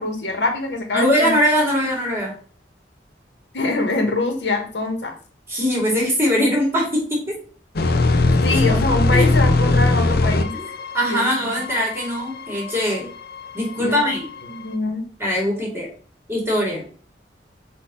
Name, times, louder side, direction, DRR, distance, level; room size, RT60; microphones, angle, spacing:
voice 1, 0.0-1.4 3.5-5.1 8.4-10.5 11.1-11.5 13.7-14.1 14.5-15.1, left 2 dB, 85° left, 4 dB, 1.4 m, -24 dB
voice 2, 0.9-2.3 5.5-7.3 8.5-8.6 9.1-9.2 10.5-10.6 10.9-13.1 13.5-14.3 15.2-15.9 16.3-16.8, equal, 15° right, -2 dB, 2.6 m, -21 dB
sound 1, 7.8-14.0 14.3-14.5, left 2 dB, 60° left, 0.6 m, -20 dB
6.2 x 2.8 x 5.3 m, 0.42 s
head